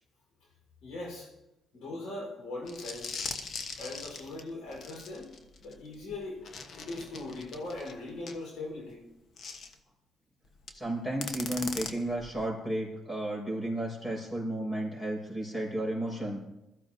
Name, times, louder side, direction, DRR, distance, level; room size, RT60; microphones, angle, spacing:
voice 1, 0.8-1.3 1.7-3.2 3.8-5.3 5.6-6.4 6.7-9.0, left 2 dB, 85° left, 0 dB, 4.5 m, -40 dB
sound 1, 2.7-8.4 9.4-9.7 10.6-10.8 11.2-12.5, left 5 dB, 60° left, 1.2 m, -41 dB
voice 2, 10.7-16.4, right 1 dB, 20° left, -1 dB, 5.6 m, -33 dB
21.0 x 14.0 x 2.8 m, 0.92 s
cardioid pair, 90°, 0 cm